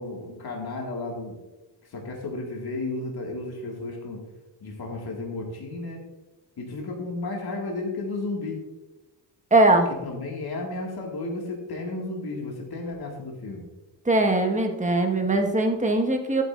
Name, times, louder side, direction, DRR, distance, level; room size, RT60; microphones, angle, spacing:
voice 1, 0.0-1.4 1.8-4.2 4.6-6.0 6.6-8.6 10.0-13.7, left 2 dB, 55° left, -1 dB, 2.1 m, -33 dB
voice 2, 9.5-9.9 14.0-16.4, right 2 dB, 15° right, 3 dB, 1.5 m, -21 dB
11.5 x 9.1 x 2.5 m, 1.1 s
cardioid pair, 75°, 44 cm